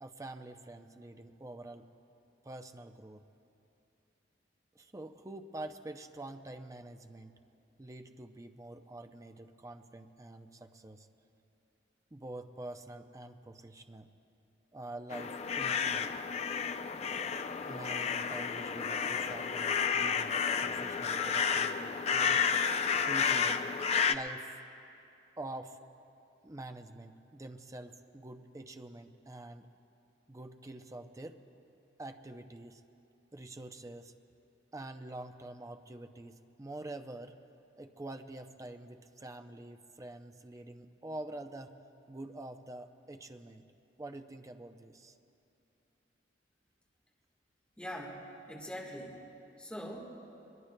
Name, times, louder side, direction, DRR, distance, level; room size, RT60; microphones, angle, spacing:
voice 1, 0.0-1.9 2.4-3.2 4.7-7.4 7.8-11.1 12.1-14.1 14.7-16.1 17.6-22.4 23.0-23.6 24.1-24.6 25.4-25.8 26.4-29.7 30.3-31.4 32.0-32.8 33.3-34.1 34.7-37.4 37.8-41.8 42.1-43.6 44.0-45.2, right 2 dB, 20° right, 7 dB, 0.5 m, -46 dB
sound 1, 15.1-24.1, left 6 dB, 35° left, 0.4 m, -31 dB
voice 2, 47.8-49.2 49.6-50.2, equal, 5° left, -2 dB, 1.5 m, -43 dB
23.0 x 21.5 x 2.2 m, 2.7 s
head